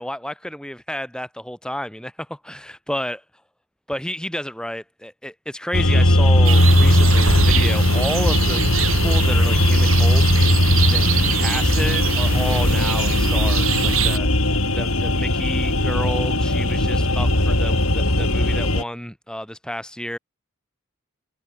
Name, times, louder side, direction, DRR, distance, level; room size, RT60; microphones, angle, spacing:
voice 1, 0.0-3.2 3.9-10.2 10.9-20.2, equal, 5° left, 7.1 m, -31 dB
sound 1, 5.7-18.8, left 1 dB, 85° left, 5.9 m, -18 dB
sound 2, 6.4-14.2, right 5 dB, 75° right, 5.5 m, -24 dB
head